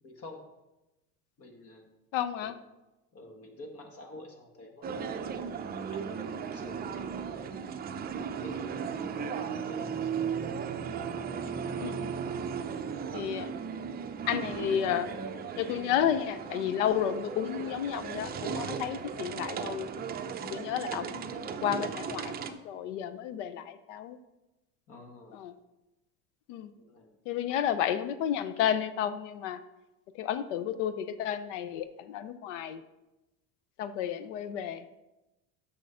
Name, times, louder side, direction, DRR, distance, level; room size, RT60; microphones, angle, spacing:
voice 1, 0.0-0.4 1.4-1.9 2.4-2.5 3.1-5.5 5.9-7.5 8.3-10.2 24.9-25.4 26.7-27.6, left 2 dB, 40° left, 4 dB, 1.3 m, -50 dB
voice 2, 2.1-2.5 11.8-12.1 13.1-13.5 14.3-15.1 15.6-19.9 20.5-24.2 25.3-25.5 26.5-26.7 27.3-29.6 30.1-32.8 33.8-34.8, left 9 dB, 85° left, 12 dB, 0.6 m, -32 dB
sound 1, 4.8-22.5, right 6 dB, 25° right, 0.6 m, -36 dB
6.4 x 6.3 x 5.5 m, 0.99 s
supercardioid pair, 115°, 35 cm